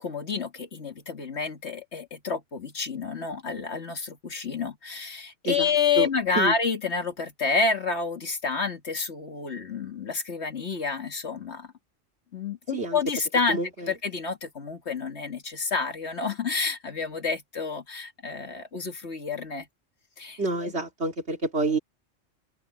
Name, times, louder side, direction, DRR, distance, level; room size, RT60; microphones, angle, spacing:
voice 1, 0.0-11.7 12.3-13.6 13.9-19.7 20.2-20.7, left 5 dB, 60° left, 2.2 m, -29 dB
voice 2, 5.4-6.1 6.3-6.5 12.7-13.0 13.5-13.9 20.4-21.8, right 2 dB, 55° right, 3.1 m, -28 dB
omnidirectional pair, 1.3 m